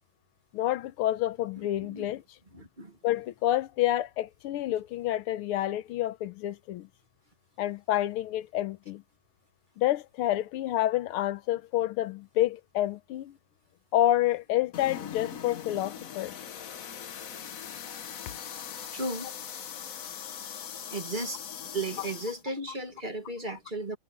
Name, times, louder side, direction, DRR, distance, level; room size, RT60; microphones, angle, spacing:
voice 1, 0.5-2.2 3.0-6.9 7.6-9.0 9.8-13.3 13.9-16.4, left 13 dB, 85° left, 1.6 m, -28 dB
voice 2, 1.6-2.1 2.5-3.0 18.9-19.3 20.9-21.4 21.7-24.0, right 2 dB, 25° right, 1.4 m, -35 dB
sound 1, 14.7-22.4, left 8 dB, 50° left, 1.1 m, -41 dB
omnidirectional pair, 2.4 m